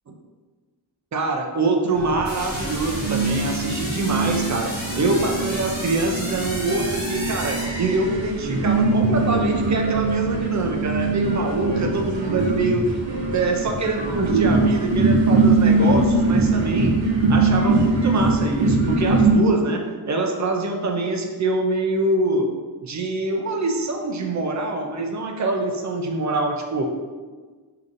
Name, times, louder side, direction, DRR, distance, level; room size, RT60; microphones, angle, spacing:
voice 1, 1.1-16.9 17.3-22.5 22.8-26.9, right 2 dB, 40° right, 2 dB, 0.4 m, -24 dB
sound 1, 2.0-19.4, right 3 dB, 75° right, 0.8 m, -22 dB
sound 2, 2.2-8.5, equal, 20° left, 1.2 m, -33 dB
4.9 x 2.8 x 2.5 m, 1.4 s
wide cardioid pair, 155°, 45 cm